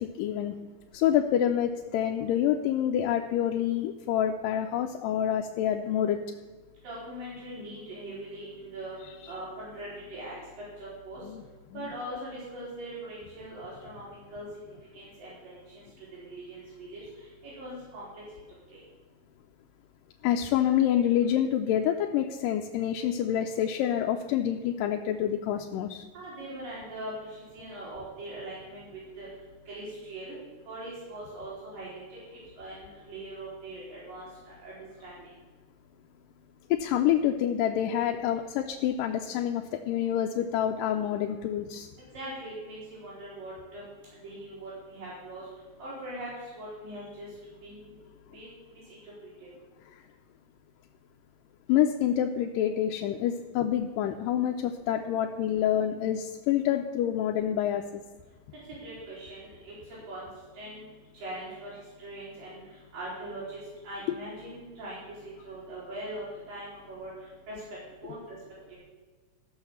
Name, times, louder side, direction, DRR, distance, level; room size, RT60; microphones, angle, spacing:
voice 1, 0.2-0.5 0.9-6.2 11.2-11.4 11.7-11.8 20.2-26.0 36.8-41.9 51.7-57.8 64.1-64.2, left 10 dB, 90° left, 3 dB, 2.3 m, -27 dB
voice 2, 6.8-8.9 9.3-10.3 10.8-11.2 11.7-15.5 16.2-17.0 17.4-18.2 18.7-18.8 26.1-27.1 27.5-28.9 29.2-29.3 29.7-30.4 30.7-32.0 32.6-32.7 33.1-34.3 34.6-34.7 35.0-35.2 42.1-43.8 44.2-45.4 45.8-46.3 46.6-47.8 48.3-48.5 48.7-49.0 49.2-49.3 58.7-59.7 60.1-60.2 60.6-60.8 61.1-62.6 62.9-63.6 63.8-65.0 65.4-67.1 67.5-67.6 68.0-68.4, right 1 dB, 85° right, -9 dB, 5.5 m, -41 dB
13.0 x 6.4 x 7.1 m, 1.4 s
omnidirectional pair, 3.8 m